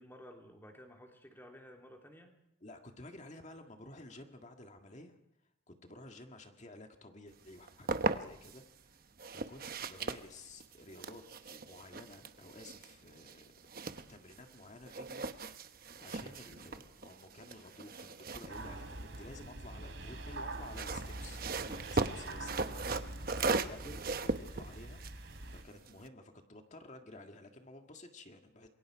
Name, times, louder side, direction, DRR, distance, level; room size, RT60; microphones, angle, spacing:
voice 1, 0.0-2.4 16.1-16.3 23.4-23.6, equal, 10° left, 2 dB, 3.2 m, -54 dB
voice 2, 2.6-5.2 5.7-9.0 9.3-13.5 13.9-15.3 15.5-15.7 16.0-23.4 23.6-25.0 25.5-28.7, left 2 dB, 35° left, 4 dB, 1.8 m, -53 dB
sound 1, 7.5-8.6 9.2-14.6 14.9-19.5 20.5-26.1, right 3 dB, 50° right, 1.0 m, -38 dB
sound 2, 18.5-25.6, right 2 dB, 65° right, 3.0 m, -45 dB
27.5 x 23.0 x 4.8 m, 0.82 s
head